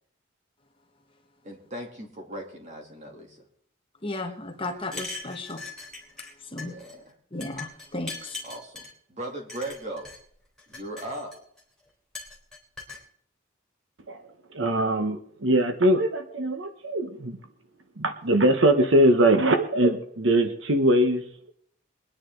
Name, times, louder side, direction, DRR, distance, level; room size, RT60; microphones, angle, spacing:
voice 1, 1.4-3.4 6.6-7.1 8.4-10.1 10.7-11.4, right 1 dB, 35° right, 3.2 m, -38 dB
voice 2, 4.0-5.6 6.5-6.7 7.3-8.4, left 2 dB, 25° left, 1.4 m, -34 dB
sound 1, 4.8-6.3 6.6-6.9 7.4-8.9 9.5-10.2 10.6-11.6 12.1-13.0, left 3 dB, ahead, 3.3 m, -40 dB
voice 3, 14.5-17.4 18.0-21.2, right 1 dB, 70° right, 1.2 m, -22 dB
22.5 x 9.9 x 3.9 m
head